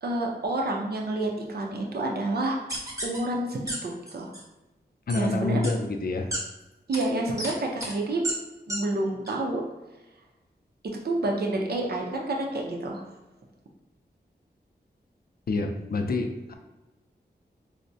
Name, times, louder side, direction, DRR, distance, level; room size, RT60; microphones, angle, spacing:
voice 1, 0.0-2.6 3.0-4.3 5.1-5.7 6.9-8.3 8.7-9.6 10.8-13.0, right 2 dB, 65° right, 0 dB, 0.6 m, -29 dB
sound 1, 2.7-3.2 3.7-3.8 4.1-4.4 5.1-5.2 5.6-5.7 6.3-6.4 6.9-7.0 7.4-7.5 7.8-7.9 8.2-8.3 8.7-8.8 9.3-9.4, right 1 dB, 20° right, 0.8 m, -31 dB
voice 2, 5.1-6.3 15.5-16.5, left 3 dB, 60° left, 4 dB, 0.4 m, -27 dB
4.5 x 2.1 x 2.6 m, 1.0 s
wide cardioid pair, 80°, 18 cm